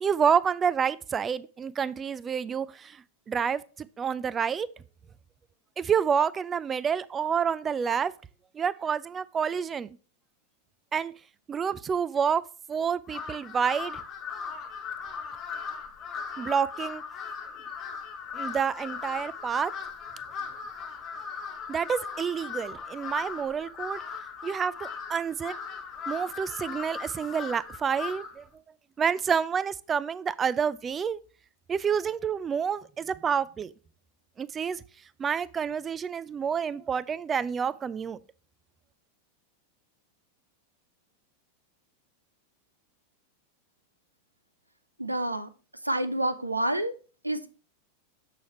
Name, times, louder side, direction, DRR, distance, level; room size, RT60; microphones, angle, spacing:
voice 1, 0.0-3.0 3.3-4.7 5.8-8.1 8.5-10.0 10.9-11.1 11.5-12.4 12.7-14.0 16.4-17.0 18.3-19.7 21.7-24.0 24.4-25.6 26.1-28.4 29.0-31.2 31.7-33.7 34.4-34.8 35.2-38.2, right 7 dB, 20° right, 0.4 m, -28 dB
Crow, 13.1-28.4, left 6 dB, 30° left, 0.9 m, -38 dB
voice 2, 45.0-45.5 45.9-46.9 47.2-47.5, right 1 dB, 85° right, 0.5 m, -28 dB
7.0 x 6.2 x 3.0 m
figure-of-eight pair, 90°, 0 cm